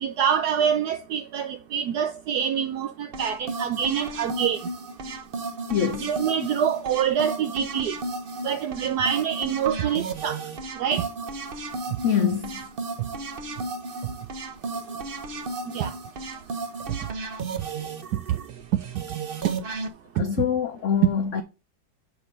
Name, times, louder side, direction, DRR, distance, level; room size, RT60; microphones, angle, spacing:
voice 1, 0.0-4.7 6.0-7.9 8.4-10.4 10.8-11.0 15.7-15.9 18.3-18.4 19.4-19.5 20.2-20.3 21.0-21.1, right 8 dB, 70° right, 1.0 m, -25 dB
sound 1, 3.1-19.9, right 3 dB, 45° right, 0.7 m, -34 dB
voice 2, 5.7-6.1 12.0-12.6 20.2-21.4, left 8 dB, 65° left, 0.7 m, -24 dB
6.0 x 5.0 x 5.3 m
omnidirectional pair, 1.9 m